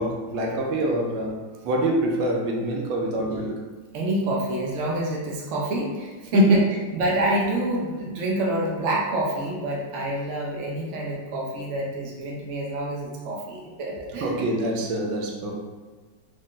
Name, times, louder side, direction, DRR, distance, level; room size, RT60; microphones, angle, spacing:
voice 1, 0.0-3.5 6.3-6.6 14.2-15.6, right 1 dB, 90° right, 0 dB, 1.4 m, -25 dB
voice 2, 3.9-14.4, right 1 dB, 70° right, -3 dB, 0.7 m, -27 dB
3.7 x 2.1 x 3.7 m, 1.4 s
omnidirectional pair, 2.0 m